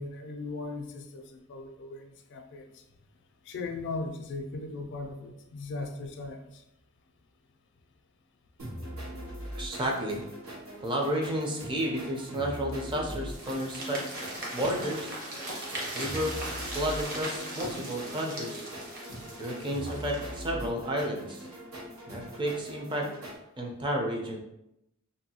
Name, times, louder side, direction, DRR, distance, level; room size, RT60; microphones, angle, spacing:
voice 1, 0.0-2.8 3.5-6.6, left 3 dB, 60° left, 5 dB, 0.3 m, -38 dB
sound 1, 8.6-23.4, equal, 75° right, 0.9 m, -42 dB
voice 2, 9.5-10.2 10.8-14.0 14.5-15.2 15.9-16.4 16.7-18.7 19.4-21.5 22.1-23.1 23.6-24.4, equal, 25° right, 0 dB, 0.4 m, -31 dB
sound 2, 13.3-20.5, right 1 dB, 45° right, 0.8 m, -39 dB
2.6 x 2.2 x 2.7 m, 0.84 s
head